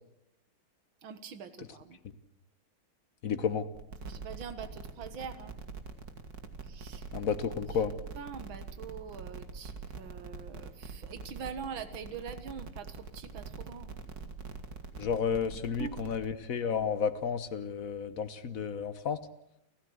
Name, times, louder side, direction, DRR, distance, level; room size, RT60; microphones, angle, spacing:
voice 1, 1.0-2.0 4.1-5.6 6.7-7.0 8.2-13.9 15.8-16.0, right 6 dB, 70° right, 10 dB, 2.2 m, -43 dB
voice 2, 3.2-3.7 7.1-7.9 15.0-19.2, left 6 dB, 45° left, 11 dB, 1.4 m, -32 dB
sound 1, 3.7-16.3, right 4 dB, 50° right, 2.2 m, -44 dB
30.0 x 15.0 x 8.0 m, 0.85 s
omnidirectional pair, 2.3 m